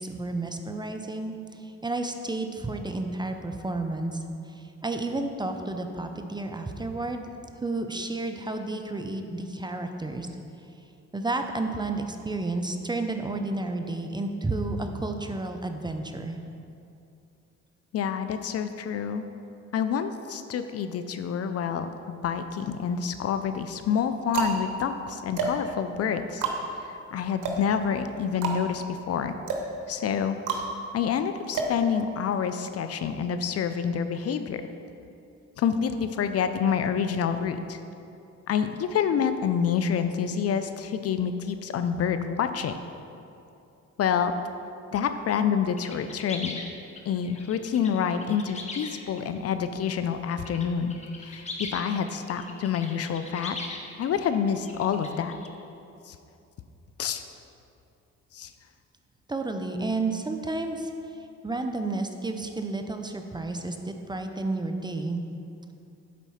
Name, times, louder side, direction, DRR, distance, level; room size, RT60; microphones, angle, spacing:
voice 1, 0.0-7.3 7.5-10.3 11.1-16.4 59.3-60.9 61.4-65.2, right 2 dB, 15° right, 5 dB, 0.5 m, -31 dB
voice 2, 17.9-19.2 19.7-26.5 26.8-29.3 29.9-30.6 30.9-34.6 35.6-37.8 38.5-42.7 44.0-44.3 44.9-46.6 47.1-53.6 54.0-55.4 56.1-56.2 57.0-57.2 58.3-58.5, left 7 dB, 55° left, 9 dB, 0.5 m, -28 dB
sound 1, 22.4-23.1 23.8-32.5, right 4 dB, 85° right, 1.0 m, -32 dB
sound 2, 45.8-49.4 49.9-50.7 50.9-55.5, left 3 dB, 20° left, 1.0 m, -40 dB
8.4 x 4.1 x 5.6 m, 2.7 s
cardioid pair, 90°, 30 cm